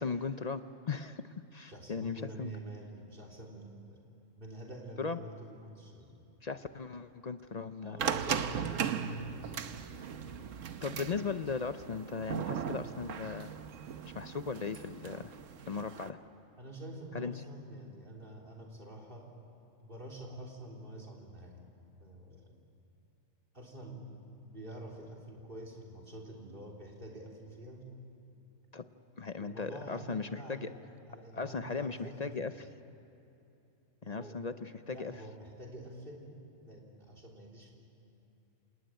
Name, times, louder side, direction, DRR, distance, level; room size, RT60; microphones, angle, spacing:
voice 1, 0.0-2.5 5.0-5.2 6.4-8.1 10.8-13.5 14.0-15.3 15.7-16.2 17.1-17.3 28.7-28.8 29.2-30.7 31.3-32.5 34.0-35.1, left 5 dB, 45° left, 10 dB, 0.5 m, -37 dB
voice 2, 1.7-4.1 4.4-6.3 7.8-9.5 16.6-19.3 19.8-21.6 22.0-22.6 23.5-24.1 24.4-27.9 29.4-30.8 31.1-32.7 34.0-34.5 34.9-37.7, right 1 dB, 40° right, -1 dB, 3.6 m, -47 dB
sound 1, 8.0-16.1, right 7 dB, 70° right, 1.3 m, -38 dB
27.5 x 19.0 x 9.0 m, 2.8 s
omnidirectional pair, 1.4 m